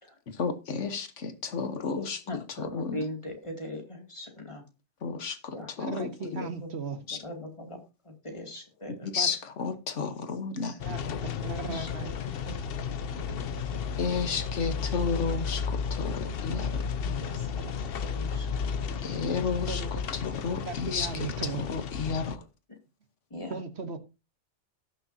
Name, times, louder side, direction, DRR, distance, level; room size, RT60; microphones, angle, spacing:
voice 1, 0.3-3.0 5.0-6.5 7.1-7.2 9.1-11.2 11.7-11.9 14.0-16.9 19.0-19.8 20.1-21.3 21.6-22.4, left 5 dB, 85° left, 1.5 m, -32 dB
voice 2, 2.3-4.6 5.5-5.7 6.0-9.3 11.7-12.6 13.1-13.8 17.0-19.2 23.3-23.6, left 1 dB, 25° left, 2.5 m, -41 dB
voice 3, 5.8-7.0 9.1-9.3 10.8-12.1 19.7-20.0 20.6-21.6 23.5-24.0, right 4 dB, 65° right, 1.5 m, -37 dB
sound 1, 10.8-22.4, left 6 dB, 60° left, 0.9 m, -33 dB
18.0 x 6.6 x 2.7 m
omnidirectional pair, 1.2 m